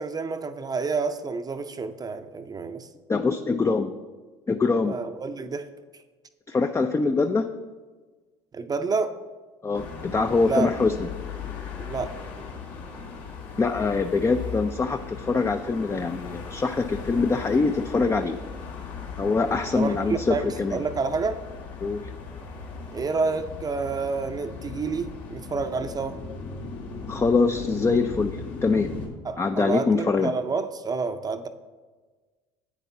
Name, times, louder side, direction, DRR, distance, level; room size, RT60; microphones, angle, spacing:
voice 1, 0.0-2.9 4.8-5.7 8.5-9.2 10.4-10.7 11.8-12.2 19.7-21.4 22.9-26.2 29.2-31.5, right 4 dB, 25° right, 9 dB, 0.6 m, -29 dB
voice 2, 3.1-4.0 4.5-5.0 6.5-7.5 9.6-11.1 13.6-18.4 19.2-20.8 21.8-22.1 27.1-28.9 29.4-30.3, left 4 dB, 20° left, 7 dB, 0.4 m, -24 dB
sound 1, 9.7-29.1, left 4 dB, 65° left, 1.7 m, -37 dB
10.5 x 8.3 x 2.7 m, 1.4 s
hypercardioid pair, 65°, 14 cm